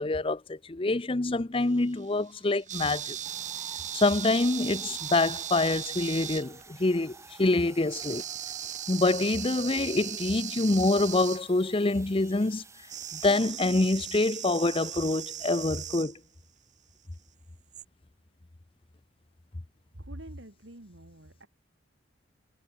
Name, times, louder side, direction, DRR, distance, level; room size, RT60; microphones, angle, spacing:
voice 1, 0.0-3.2 3.9-8.2 8.9-12.6 13.1-16.1, left 2 dB, 30° left, 0.7 m, -26 dB
sound 1, 1.6-6.8 7.9-11.4 12.9-16.2 17.7-17.8, right 10 dB, 40° right, 1.6 m, -38 dB
sound 2, 3.2-13.4, right 4 dB, 15° right, 6.5 m, -52 dB
voice 2, 19.9-21.5, right 1 dB, 75° right, 3.9 m, -45 dB
head